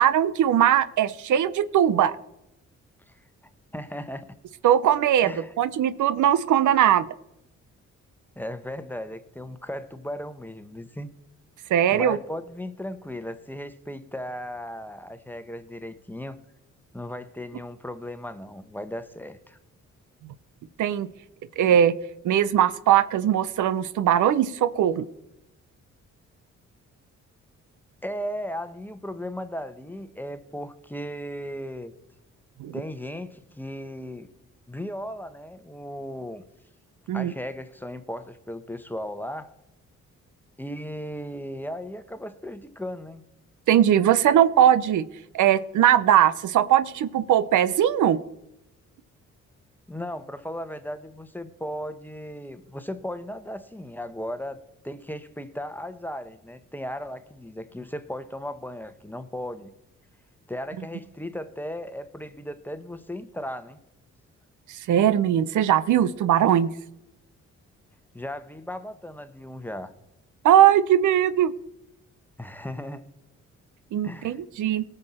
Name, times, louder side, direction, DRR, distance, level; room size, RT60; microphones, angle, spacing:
voice 1, 0.0-2.2 4.6-7.0 11.7-12.2 20.8-21.1 21.6-21.9 22.2-25.0 32.6-32.7 37.1-37.3 43.7-45.0 45.3-48.2 64.9-66.7 70.4-71.5 73.9-74.8, right 10 dB, 75° right, 15 dB, 0.6 m, -20 dB
voice 2, 3.7-4.3 5.2-5.5 8.4-11.1 11.9-16.4 16.9-19.6 28.0-31.9 32.7-34.3 34.7-36.4 37.1-39.5 40.6-43.2 49.9-54.6 54.8-59.7 60.5-63.8 68.1-69.9 72.4-73.1 74.0-74.4, equal, 5° left, 11 dB, 1.1 m, -36 dB
18.0 x 6.7 x 4.3 m, 0.87 s
supercardioid pair, 60°, 31 cm